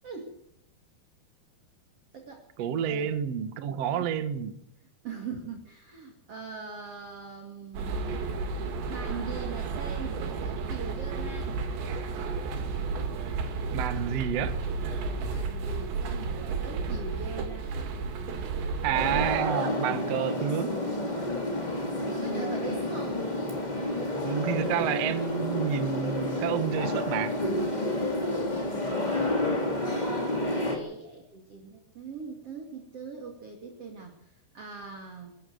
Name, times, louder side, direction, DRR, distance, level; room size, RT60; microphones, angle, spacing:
voice 1, 0.0-0.3 2.1-2.5 2.8-3.1 3.8-4.1 5.0-8.5 8.9-11.6 15.0-17.8 22.0-23.3 28.5-29.4 30.2-35.4, right 5 dB, 40° right, 2.8 m, -42 dB
voice 2, 2.6-4.6 13.7-14.6 18.8-20.8 24.2-27.4, right 9 dB, 60° right, 1.7 m, -29 dB
sound 1, 7.7-19.4, right 4 dB, 80° right, 4.6 m, -32 dB
sound 2, 18.9-30.8, left 1 dB, 10° left, 3.0 m, -30 dB
23.5 x 14.0 x 8.0 m
omnidirectional pair, 5.1 m